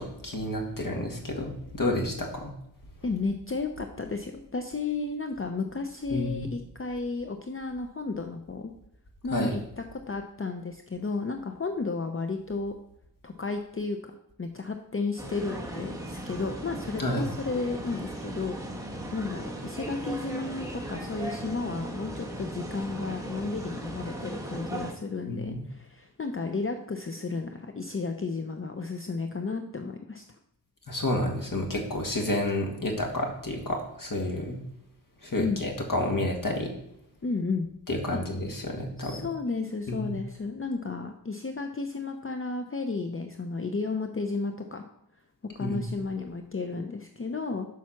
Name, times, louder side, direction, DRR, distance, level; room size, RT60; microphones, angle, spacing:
voice 1, 0.0-2.5 6.1-6.5 9.3-9.6 17.0-17.3 25.3-25.7 30.9-34.6 35.2-36.7 37.9-39.2 39.9-40.2 45.6-45.9, left 1 dB, 55° left, 2 dB, 1.8 m, -30 dB
voice 2, 3.0-8.7 9.2-12.7 13.2-14.1 14.4-18.6 19.1-30.2 35.4-35.6 37.2-37.7 38.1-38.2 39.0-44.8 45.5-47.7, left 4 dB, 30° left, 5 dB, 0.6 m, -33 dB
sound 1, 15.2-24.9, right 1 dB, 10° right, 1.5 m, -37 dB
7.5 x 5.7 x 5.8 m, 0.76 s
wide cardioid pair, 105°, 40 cm